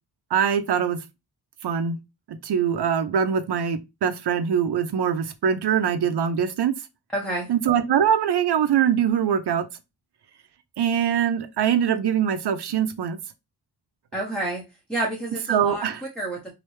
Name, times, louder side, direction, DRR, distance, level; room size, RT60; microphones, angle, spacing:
voice 1, 0.3-1.0 1.6-2.0 2.3-6.7 7.5-9.7 10.8-13.2 15.5-16.0, right 8 dB, 70° right, 0.6 m, -23 dB
voice 2, 7.1-7.5 14.1-16.5, right 1 dB, ahead, 0.7 m, -29 dB
3.2 x 2.7 x 3.1 m
wide cardioid pair, 140°, 41 cm